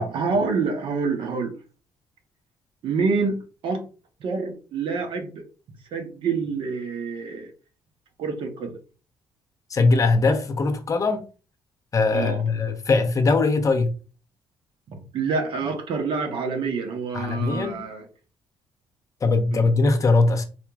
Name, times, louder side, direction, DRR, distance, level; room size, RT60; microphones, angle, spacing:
voice 1, 0.0-1.5 2.8-3.9 4.2-5.4 5.9-7.5 8.2-8.8 12.1-12.4 14.9-18.1 19.5-19.6, right 4 dB, 70° right, 1.0 m, -27 dB
voice 2, 9.7-11.2 11.9-13.9 17.1-17.8 19.2-20.4, left 3 dB, 40° left, 0.8 m, -21 dB
4.2 x 2.9 x 2.4 m
cardioid pair, 90°, 9 cm